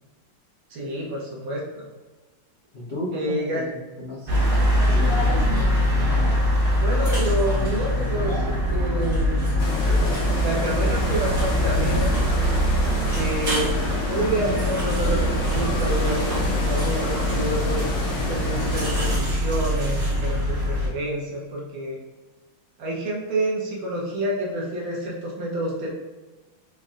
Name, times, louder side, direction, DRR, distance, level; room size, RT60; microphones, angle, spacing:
voice 1, 0.7-1.9 3.1-3.6 6.8-9.3 10.4-12.3 13.1-13.8 14.1-17.8 18.3-22.0 22.8-25.9, right 1 dB, 75° right, -3 dB, 1.8 m, -28 dB
voice 2, 2.7-4.4 4.8-5.3, left 1 dB, 45° left, -9 dB, 0.8 m, -34 dB
sound 1, 4.3-20.9, equal, 45° right, 1.8 m, -23 dB
sound 2, 9.6-19.2, left 2 dB, 80° left, 1.7 m, -30 dB
5.1 x 3.2 x 2.4 m, 1.2 s
omnidirectional pair, 2.2 m